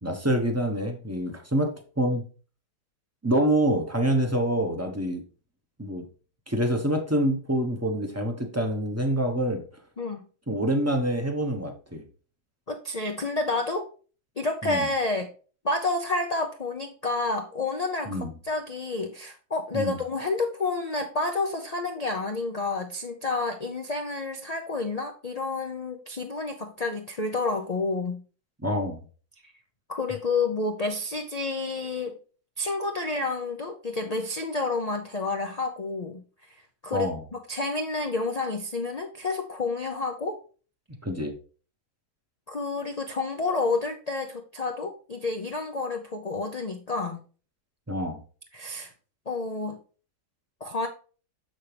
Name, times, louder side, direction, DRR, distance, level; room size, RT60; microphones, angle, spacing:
voice 1, 0.0-2.2 3.2-5.2 5.8-6.0 6.5-9.6 10.5-12.0 14.6-14.9 18.1-18.3 19.7-20.0 28.6-29.0 36.9-37.2 41.0-41.4 47.9-48.2, right 1 dB, 15° right, 0.7 m, -26 dB
voice 2, 12.7-13.9 14.4-15.3 15.6-28.2 29.4-29.5 29.9-32.1 32.6-36.2 36.5-40.4 42.5-47.2 48.5-48.9 49.3-49.8 50.6-50.9, left 3 dB, 60° left, 0.4 m, -29 dB
6.9 x 6.4 x 3.3 m
omnidirectional pair, 1.8 m